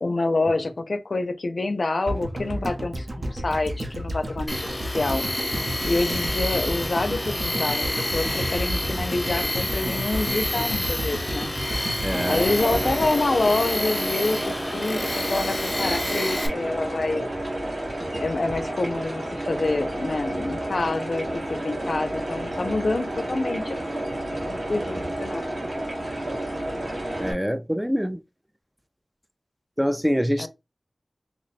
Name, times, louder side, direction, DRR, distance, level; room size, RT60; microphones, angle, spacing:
voice 1, 0.0-4.7 4.9-5.2 5.8-11.5 12.3-17.3 18.2-25.4 30.4-30.5, left 2 dB, 75° left, 0.5 m, -27 dB
sound 1, 2.1-14.3 14.5-14.6, equal, 50° right, 0.8 m, -32 dB
Tools, 4.5-16.5, left 1 dB, 25° left, 0.7 m, -29 dB
voice 2, 12.0-12.5 27.2-28.2 29.8-30.5, equal, 5° right, 0.3 m, -25 dB
sound 2, 12.1-27.3, right 1 dB, 75° right, 1.3 m, -30 dB
2.9 x 2.2 x 4.1 m
wide cardioid pair, 75°, 0 cm